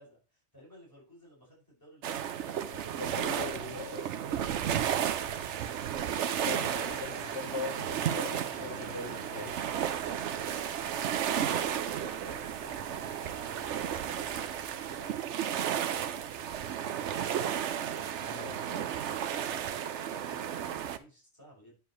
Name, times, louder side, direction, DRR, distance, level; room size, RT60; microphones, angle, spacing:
voice 1, 0.0-3.1 4.8-7.3 10.8-19.2 19.7-21.8, equal, 20° left, -3 dB, 5.6 m, -55 dB
sound 1, 2.0-21.0, right 9 dB, 80° right, 1.0 m, -33 dB
voice 2, 3.0-4.1 6.5-9.6 18.3-18.6, left 4 dB, 70° left, 4 dB, 1.5 m, -40 dB
sound 2, 5.9-15.2, equal, 10° right, 3.0 m, -52 dB
9.3 x 7.1 x 3.2 m, 0.34 s
omnidirectional pair, 1.2 m